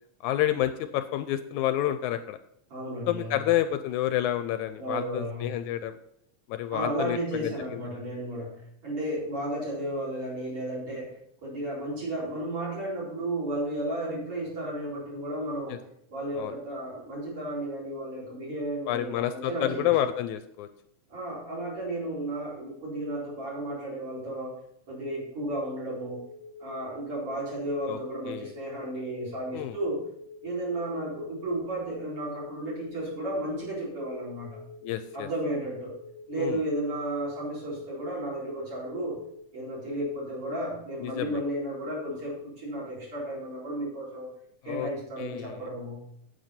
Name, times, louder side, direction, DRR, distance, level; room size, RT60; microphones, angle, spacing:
voice 1, 0.2-2.4 3.1-6.0 6.5-7.8 15.7-15.8 16.3-16.6 18.9-20.7 27.9-28.0 28.2-28.5 29.5-29.8 34.8-35.3 36.4-36.6 41.0-41.4 44.7-44.9 45.2-45.6, left 12 dB, 80° left, 10 dB, 1.8 m, -29 dB
voice 2, 2.7-3.5 4.8-5.6 6.7-11.1 11.4-15.8 16.1-19.9 21.1-24.6 24.9-26.2 26.6-30.0 30.4-34.6 35.1-35.9 36.3-39.2 39.5-44.3 44.6-46.0, right 1 dB, 45° right, -5 dB, 5.3 m, -33 dB
sound 1, 25.7-39.4, left 3 dB, ahead, 1.9 m, -47 dB
9.5 x 8.5 x 4.3 m, 0.72 s
omnidirectional pair, 3.6 m